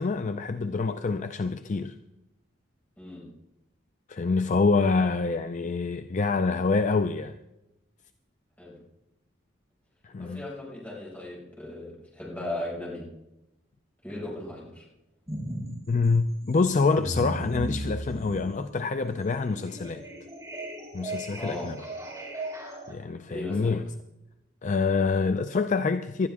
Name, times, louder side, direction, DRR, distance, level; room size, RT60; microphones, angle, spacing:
voice 1, 0.0-1.9 4.1-7.3 10.0-10.4 15.9-20.0 20.9-21.8 22.9-23.8 24.6-26.3, left 4 dB, 40° left, 0.5 m, -26 dB
voice 2, 3.0-3.3 8.6-8.8 10.2-13.1 14.0-14.9 21.4-21.8 23.3-23.8, left 1 dB, 10° left, 5.8 m, -37 dB
sound 1, 15.3-15.7 16.0-22.9, right 1 dB, 20° right, 4.8 m, -36 dB
19.5 x 12.0 x 3.6 m
head